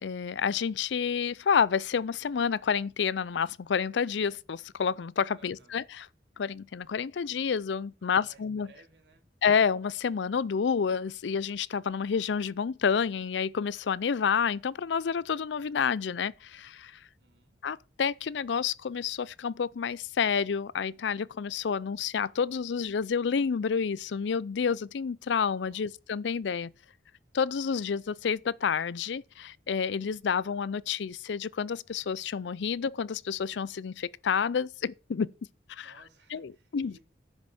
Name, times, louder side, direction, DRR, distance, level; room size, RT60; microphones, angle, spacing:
voice 1, 0.0-6.1 6.4-8.7 9.4-17.0 17.6-26.7 27.3-35.3 35.7-35.9 36.3-37.0, left 6 dB, 75° left, 0.4 m, -29 dB
voice 2, 5.3-5.9 8.0-9.3 17.2-17.6 25.6-25.9 35.8-37.0, right 3 dB, 70° right, 3.3 m, -60 dB
10.5 x 6.2 x 7.1 m
head